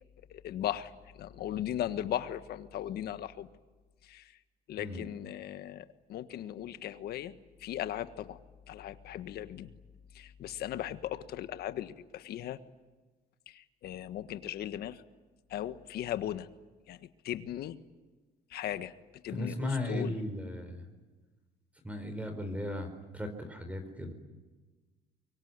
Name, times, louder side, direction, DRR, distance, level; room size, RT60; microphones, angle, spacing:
voice 1, 0.3-3.5 4.0-4.3 4.7-8.4 8.7-9.7 10.1-12.6 13.5-15.0 15.5-16.5 16.9-17.8 18.5-18.9 19.2-20.2, left 11 dB, 70° left, 11 dB, 1.5 m, -38 dB
voice 2, 19.3-20.9 21.8-24.1, left 1 dB, 10° right, 8 dB, 4.3 m, -36 dB
24.5 x 23.5 x 9.7 m, 1.3 s
cardioid pair, 110°, 17 cm